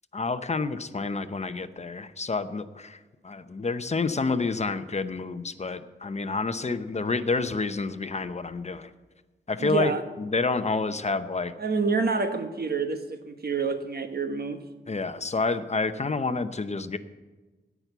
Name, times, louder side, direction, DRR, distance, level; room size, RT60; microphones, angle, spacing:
voice 1, 0.1-8.9 9.5-11.5 14.9-17.0, left 4 dB, 35° left, 11 dB, 0.8 m, -29 dB
voice 2, 9.6-10.0 11.6-14.6, right 4 dB, 55° right, 7 dB, 1.3 m, -28 dB
17.0 x 6.1 x 8.1 m, 1.2 s
wide cardioid pair, 105°, 20 cm